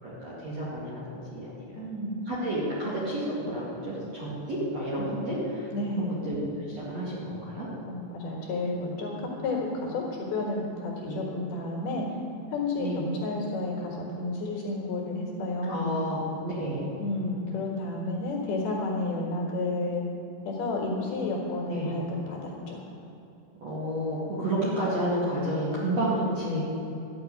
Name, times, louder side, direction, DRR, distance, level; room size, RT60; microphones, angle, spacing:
voice 1, 0.0-1.8 2.3-5.7 6.0-6.4 6.7-7.7 11.0-11.2 12.8-13.1 15.7-16.9 21.6-22.0 23.6-26.6, right 1 dB, 45° right, -7 dB, 2.4 m, -31 dB
voice 2, 1.7-2.2 5.0-5.2 5.7-6.1 7.9-12.2 12.5-15.9 17.0-20.0 20.4-22.8, left 2 dB, 65° left, -1 dB, 3.1 m, -31 dB
12.5 x 6.8 x 9.5 m, 2.9 s
omnidirectional pair, 5.6 m